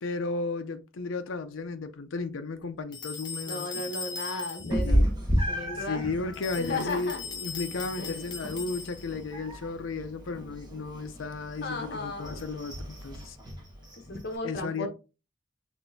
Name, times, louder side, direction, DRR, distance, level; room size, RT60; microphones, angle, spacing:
voice 1, 0.0-3.9 4.8-5.1 5.7-13.4 14.4-14.9, left 3 dB, 75° left, 0.5 m, -34 dB
sound 1, 2.9-4.9 6.3-9.2, left 5 dB, 25° left, 0.6 m, -39 dB
voice 2, 3.5-5.0 5.5-6.1 6.6-7.2 8.0-8.3 11.6-12.4 14.1-14.9, left 2 dB, 55° left, 1.0 m, -34 dB
Meow, 4.7-14.4, equal, 20° right, 1.3 m, -33 dB
6.1 x 3.3 x 2.6 m
head